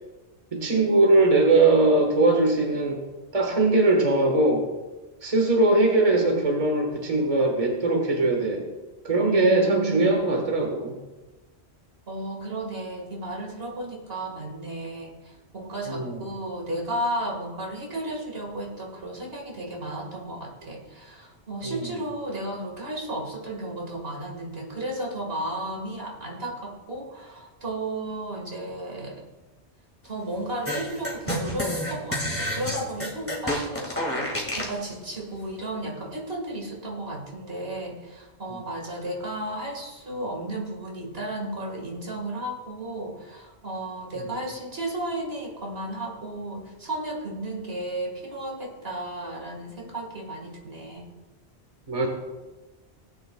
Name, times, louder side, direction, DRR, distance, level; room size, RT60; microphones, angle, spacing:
voice 1, 0.5-3.0 3.3-4.6 5.2-8.6 9.0-11.0 15.9-16.2 21.6-21.9 38.5-38.6 51.9-52.1, right 2 dB, 30° right, 1 dB, 1.5 m, -21 dB
voice 2, 9.2-10.2 12.1-29.2 30.0-51.1, right 1 dB, 60° right, 0 dB, 2.0 m, -34 dB
sound 1, 30.6-34.8, equal, 10° left, 1.9 m, -29 dB
17.5 x 9.1 x 2.3 m, 1.2 s
omnidirectional pair, 1.1 m